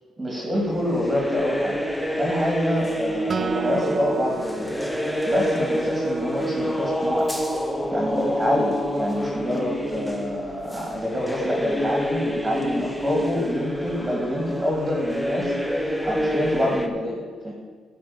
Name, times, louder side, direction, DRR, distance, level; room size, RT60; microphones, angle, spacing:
voice 1, 0.2-1.9 2.2-4.7 5.0-7.3 7.9-17.5, equal, 20° right, -2 dB, 2.6 m, -26 dB
sound 1, 0.5-16.9, equal, 5° left, 1.0 m, -28 dB
Acoustic guitar, 3.3-6.7, right 5 dB, 40° right, 0.5 m, -34 dB
11.5 x 5.4 x 7.3 m, 1.5 s
cardioid pair, 90°, 0 cm